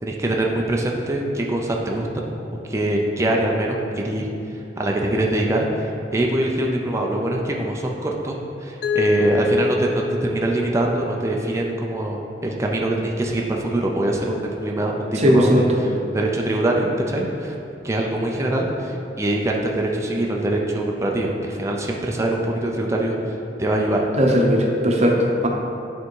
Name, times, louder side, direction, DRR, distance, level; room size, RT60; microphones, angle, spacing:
voice 1, 0.0-2.3 2.7-4.3 4.8-17.6 17.8-24.1, right 1 dB, 15° right, -1 dB, 0.5 m, -23 dB
Mallet percussion, 8.8-11.7, left 2 dB, 60° left, 0.5 m, -25 dB
voice 2, 15.2-15.6 24.2-25.5, equal, 40° right, 0 dB, 0.9 m, -17 dB
9.4 x 3.6 x 4.7 m, 2.7 s
head